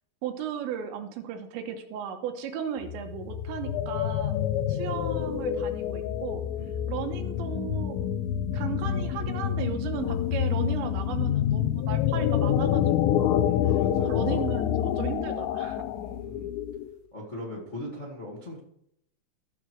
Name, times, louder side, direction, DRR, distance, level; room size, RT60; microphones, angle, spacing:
voice 1, 0.2-4.3 4.7-6.4 6.9-8.0 8.5-13.5 14.0-15.8, right 8 dB, 80° right, 5 dB, 3.1 m, -36 dB
sound 1, 2.8-17.0, left 10 dB, 80° left, 2.7 m, -27 dB
voice 2, 13.4-14.1 15.9-16.5 17.1-18.6, left 1 dB, 60° left, -4 dB, 0.7 m, -40 dB
14.5 x 6.5 x 4.6 m, 0.72 s
omnidirectional pair, 5.5 m